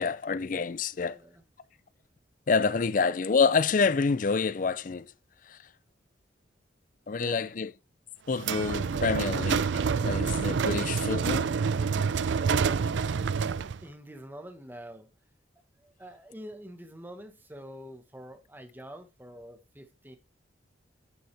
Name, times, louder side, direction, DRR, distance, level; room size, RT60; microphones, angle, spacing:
voice 1, 0.0-1.2 2.5-5.1 5.5-5.6 7.1-7.7 8.3-11.5, left 5 dB, 45° left, 0.4 m, -27 dB
voice 2, 1.1-1.4 2.6-2.9 7.2-7.5 13.8-15.1 15.8-20.2, equal, 10° right, 1.3 m, -46 dB
sound 1, 8.4-13.8, right 5 dB, 70° right, 0.4 m, -27 dB
11.0 x 6.5 x 3.4 m
head